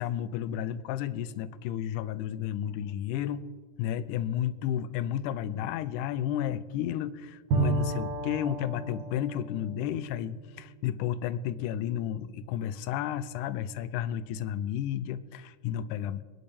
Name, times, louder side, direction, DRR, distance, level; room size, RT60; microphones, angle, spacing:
voice 1, 0.0-3.5 3.8-16.2, left 10 dB, 80° left, 15 dB, 2.0 m, -32 dB
Bowed string instrument, 7.5-11.2, right 4 dB, 65° right, 2.6 m, -33 dB
25.5 x 10.0 x 3.4 m, 1.5 s
omnidirectional pair, 3.8 m